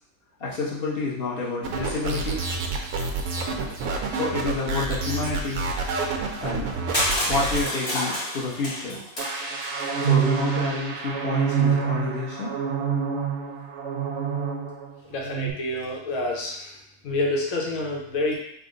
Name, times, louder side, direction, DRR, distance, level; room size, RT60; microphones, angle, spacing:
voice 1, 0.4-2.4 4.1-5.7 6.4-6.7 7.3-9.0 10.0-12.5, left 3 dB, 50° left, -6 dB, 1.0 m, -29 dB
sound 1, 1.6-7.6, right 3 dB, 85° right, 1.0 m, -28 dB
Crushing, 6.9-9.9, left 1 dB, 25° left, 0.7 m, -29 dB
sound 2, 9.2-14.9 15.2-15.5, right 8 dB, 65° right, 0.8 m, -26 dB
voice 2, 15.0-16.8 17.0-18.4, left 2 dB, 85° left, -2 dB, 1.2 m, -28 dB
3.7 x 2.0 x 3.7 m, 0.73 s
omnidirectional pair, 1.4 m